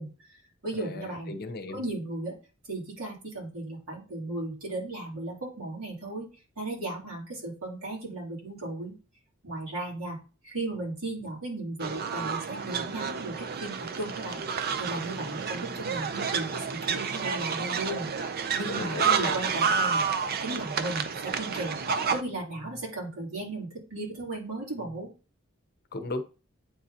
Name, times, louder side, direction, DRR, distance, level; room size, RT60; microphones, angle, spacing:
voice 1, 0.0-1.3 1.7-2.4 2.7-6.3 6.6-8.9 9.4-10.2 10.4-20.0 20.4-21.8 22.1-25.1, right 2 dB, 90° right, 3.2 m, -36 dB
voice 2, 0.8-1.9 18.6-19.4 25.9-26.2, left 2 dB, 50° left, 0.8 m, -35 dB
sound 1, 11.8-22.2, right 6 dB, 50° right, 0.5 m, -30 dB
8.7 x 3.8 x 2.8 m
head